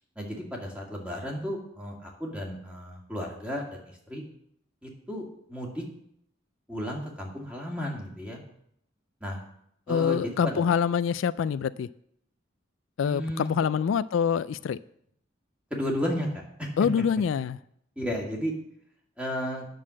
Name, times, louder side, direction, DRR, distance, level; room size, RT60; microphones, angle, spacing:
voice 1, 0.2-4.2 4.8-5.8 6.7-8.4 9.2-9.4 9.9-10.6 13.0-13.5 15.7-16.7 18.0-18.5 19.2-19.7, equal, 5° right, -1 dB, 2.2 m, -33 dB
voice 2, 9.9-11.9 13.0-14.8 16.8-17.6, left 7 dB, 80° left, 15 dB, 0.3 m, -25 dB
9.3 x 6.5 x 7.4 m, 0.72 s
head